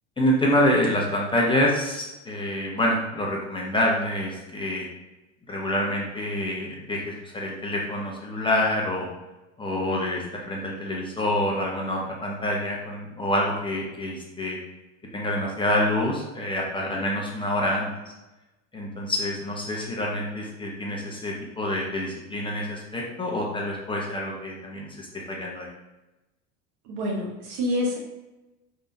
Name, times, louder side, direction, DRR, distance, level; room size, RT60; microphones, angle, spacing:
voice 1, 0.2-4.9 5.5-9.1 9.6-14.6 15.1-17.9 18.7-25.7, left 1 dB, 15° left, -2 dB, 1.0 m, -27 dB
voice 2, 26.9-28.0, left 1 dB, 65° right, -1 dB, 1.4 m, -27 dB
4.9 x 3.4 x 2.8 m, 1.0 s
supercardioid pair, 105°, 34 cm